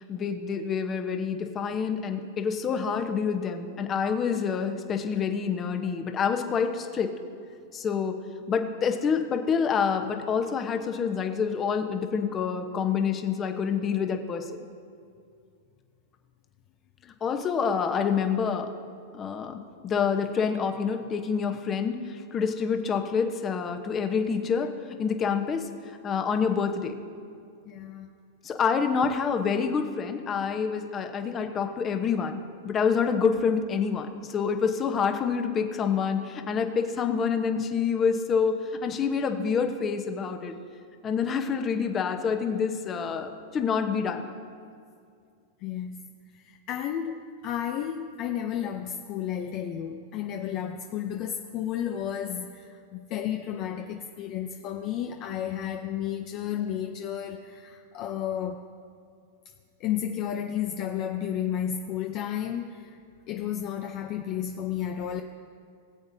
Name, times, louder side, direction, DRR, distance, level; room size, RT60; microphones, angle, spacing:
voice 1, 0.1-7.1 7.7-8.2 8.5-14.4 17.2-18.7 19.1-24.7 25.0-25.7 26.0-26.9 28.4-40.6 41.0-44.2, left 6 dB, 25° left, 6 dB, 1.0 m, -27 dB
voice 2, 27.7-28.1 45.6-58.7 59.8-63.0 63.3-65.2, left 10 dB, 40° left, 4 dB, 0.6 m, -32 dB
20.0 x 7.9 x 2.8 m, 2.3 s
hypercardioid pair, 130°, 0 cm